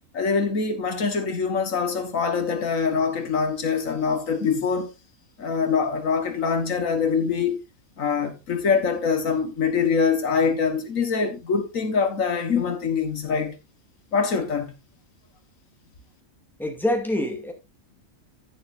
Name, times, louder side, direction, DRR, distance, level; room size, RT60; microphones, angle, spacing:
voice 1, 0.1-4.9 5.4-7.6 8.0-13.6 14.1-14.7, left 5 dB, 75° left, 1.8 m, -24 dB
voice 2, 16.6-17.5, left 1 dB, ahead, 2.3 m, -25 dB
11.0 x 10.5 x 2.6 m
omnidirectional pair, 1.4 m